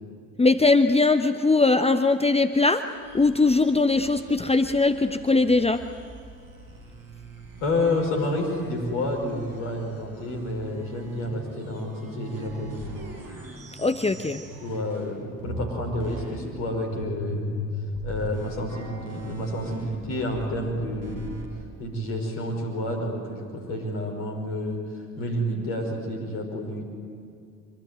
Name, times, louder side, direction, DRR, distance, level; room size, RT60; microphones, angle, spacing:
voice 1, 0.4-2.8 3.1-5.8 13.8-14.4, left 3 dB, 15° left, 9 dB, 1.0 m, -20 dB
sound 1, 2.9-15.1 15.4-21.5, equal, 60° right, 5.7 m, -39 dB
voice 2, 7.6-12.9 14.6-17.6 18.0-21.3 21.8-26.8, left 1 dB, 70° left, 2 dB, 5.5 m, -29 dB
25.0 x 24.0 x 9.4 m, 2.4 s
figure-of-eight pair, 45°, 40 cm